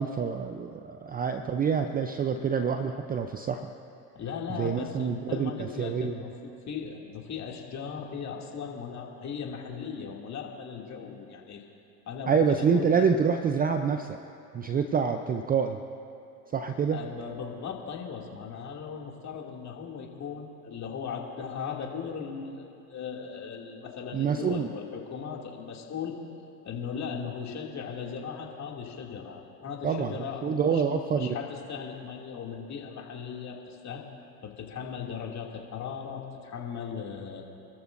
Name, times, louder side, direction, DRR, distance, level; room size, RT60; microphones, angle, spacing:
voice 1, 0.0-3.7 4.6-6.2 12.3-14.2 14.5-15.8 16.5-17.0 24.1-24.7 29.8-31.4, right 6 dB, 20° right, 7 dB, 0.5 m, -27 dB
voice 2, 4.1-11.6 12.1-13.0 16.9-26.2 26.6-34.0 34.4-37.5, left 6 dB, 35° left, -1 dB, 2.6 m, -38 dB
28.5 x 13.5 x 2.6 m, 2.6 s
hypercardioid pair, 95°, 48 cm